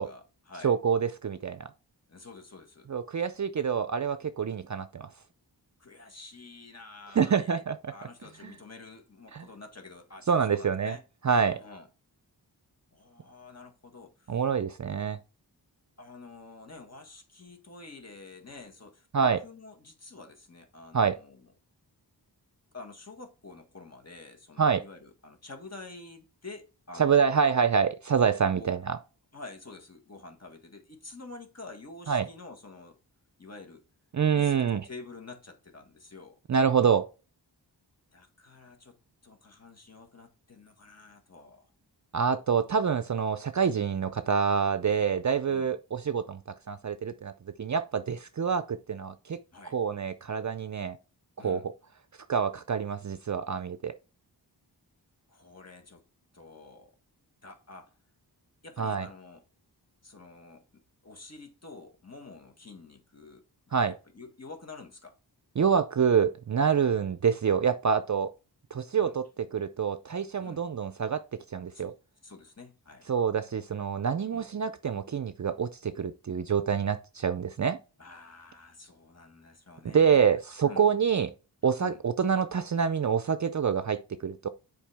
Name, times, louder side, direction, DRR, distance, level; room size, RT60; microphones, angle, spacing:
voice 1, 0.0-0.7 2.1-2.9 5.8-7.6 7.9-11.0 11.5-11.9 12.9-14.4 16.0-21.4 22.7-27.3 28.5-28.7 29.3-33.0 33.4-33.8 34.3-36.4 38.1-39.0 39.2-41.7 45.5-45.7 49.5-49.8 51.4-51.7 55.3-56.0 56.3-56.9 57.4-58.0 58.6-59.4 60.0-65.2 66.8-67.0 68.9-69.2 70.4-70.6 71.7-71.9 72.2-73.1 74.3-74.5 78.0-80.3 80.6-80.9 81.8-82.0, left 3 dB, 35° left, 1.7 m, -48 dB
voice 2, 0.6-1.7 2.9-5.1 7.1-7.8 9.3-9.5 10.3-11.0 11.2-11.6 14.3-15.2 19.1-19.4 20.9-21.2 24.6-24.8 27.0-29.0 32.1-32.3 34.1-34.8 36.5-37.1 42.1-46.4 46.7-47.3 47.6-49.4 49.6-51.0 51.4-51.7 52.3-53.9 58.8-59.1 63.7-63.9 65.6-68.3 68.7-71.2 71.5-71.9 73.1-77.8 79.8-81.3 81.6-84.5, right 6 dB, 45° right, 0.5 m, -26 dB
7.3 x 4.7 x 3.4 m
wide cardioid pair, 70°, 42 cm